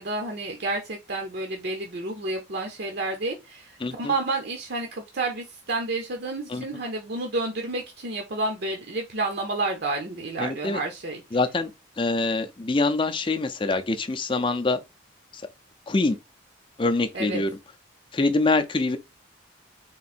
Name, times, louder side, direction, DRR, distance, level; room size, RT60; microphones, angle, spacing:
voice 1, 0.0-11.2 17.1-17.4, right 2 dB, 55° right, 0.7 m, -30 dB
voice 2, 3.8-4.1 6.5-6.6 10.4-10.8 11.3-11.7 12.0-14.8 15.3-15.4 15.9-16.2 16.8-17.6 18.1-19.0, left 3 dB, 25° left, 0.5 m, -24 dB
3.7 x 2.6 x 4.2 m
head